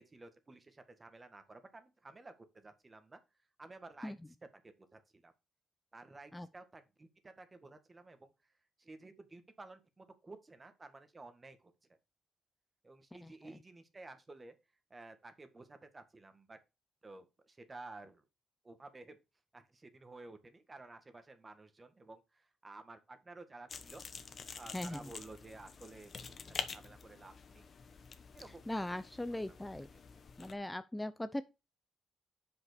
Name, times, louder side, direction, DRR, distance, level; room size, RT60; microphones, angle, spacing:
voice 1, 0.0-3.2 3.6-4.1 4.6-5.3 5.9-8.5 8.8-11.7 12.8-14.6 14.9-16.6 17.0-18.2 18.6-19.2 19.5-24.1 24.6-27.7 28.3-29.0 29.5-29.7, right 2 dB, 30° right, 1.8 m, -53 dB
voice 2, 13.2-13.6 24.7-25.1 28.7-29.9 30.4-31.4, left 1 dB, 10° left, 0.6 m, -39 dB
sound 1, 23.7-30.6, left 5 dB, 55° left, 1.2 m, -47 dB
5.8 x 5.3 x 6.8 m
cardioid pair, 70°, 0 cm